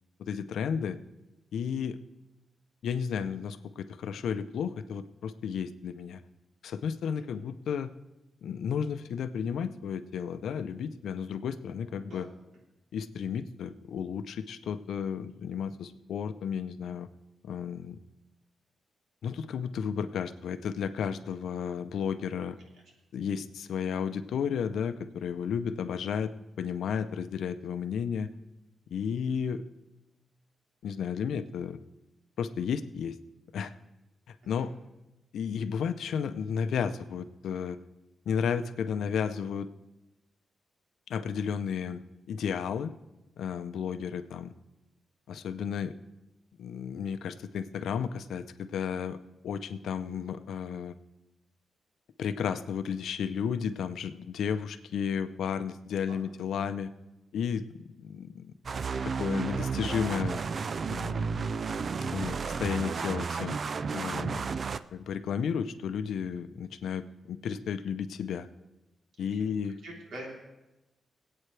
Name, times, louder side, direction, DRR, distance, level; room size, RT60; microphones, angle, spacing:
voice 1, 0.2-1.0 1.5-2.0 2.8-6.2 6.6-7.9 8.4-12.3 12.9-17.1 17.4-18.0 19.2-22.6 23.1-26.3 26.6-28.3 28.9-29.6 30.8-31.8 32.4-33.2 33.5-33.7 34.3-34.7 35.3-37.8 38.3-39.7 41.1-42.0 42.3-42.9 43.4-44.5 45.3-45.9 46.6-49.2 49.4-50.9 52.2-56.9 57.3-58.5 59.0-60.4 60.9-61.5 62.1-63.6 63.9-64.5 64.9-68.5 69.2-69.8, left 7 dB, 90° left, 11 dB, 0.6 m, -33 dB
voice 2, 11.9-12.3 34.6-34.7 56.1-56.2 69.2-69.5 69.8-70.3, right 1 dB, 75° right, -2 dB, 3.4 m, -45 dB
sound 1, 58.7-64.8, right 5 dB, 45° right, 0.4 m, -32 dB
25.0 x 8.6 x 3.3 m, 1.0 s
cardioid pair, 115°, 0 cm